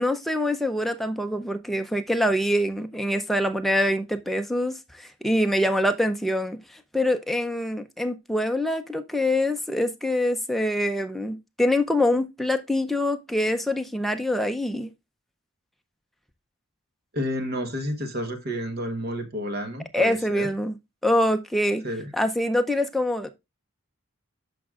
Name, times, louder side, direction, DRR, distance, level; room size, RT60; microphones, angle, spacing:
voice 1, 0.0-14.9 19.9-20.8 21.0-21.8 22.1-23.3, left 1 dB, ahead, 0.5 m, -25 dB
voice 2, 17.1-20.5 21.8-22.1, equal, 45° right, 1.2 m, -30 dB
12.5 x 5.1 x 2.4 m
head